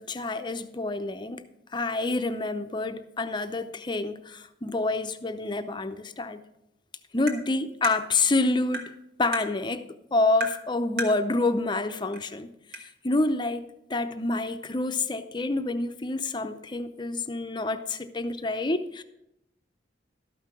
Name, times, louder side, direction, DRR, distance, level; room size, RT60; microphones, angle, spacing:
voice 1, 0.0-1.4 1.7-6.4 7.1-8.9 9.2-9.8 10.1-12.5 12.7-19.0, left 2 dB, 25° left, 0.6 m, -28 dB
Tap, 7.3-7.4 7.8-8.0 8.7-8.9 9.3-9.5 10.4-10.6 11.0-11.2 12.1-12.2 12.7-12.8, right 2 dB, 65° right, 1.6 m, -32 dB
12.5 x 5.6 x 6.0 m
head